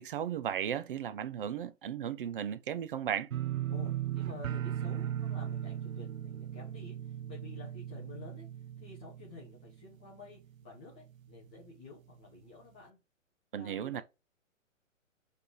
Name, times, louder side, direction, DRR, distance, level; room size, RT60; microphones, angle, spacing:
voice 1, 0.0-3.3 13.5-14.0, right 9 dB, 45° right, 0.5 m, -35 dB
sound 1, 3.3-10.2 10.5-11.0 11.4-11.5, right 11 dB, 90° right, 0.5 m, -37 dB
voice 2, 3.7-13.0 13.5-14.0, left 3 dB, 5° left, 0.3 m, -50 dB
6.7 x 3.3 x 4.7 m
hypercardioid pair, 130°, 40 cm